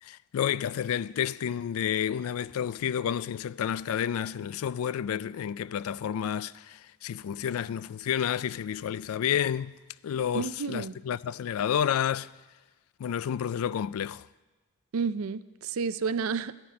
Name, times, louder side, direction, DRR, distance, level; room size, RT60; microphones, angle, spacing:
voice 1, 0.0-9.7 10.0-12.3 13.0-14.3, left 9 dB, 80° left, 0.3 m, -30 dB
voice 2, 10.3-10.9 14.9-16.5, right 5 dB, 75° right, 0.4 m, -30 dB
13.5 x 5.8 x 8.5 m
head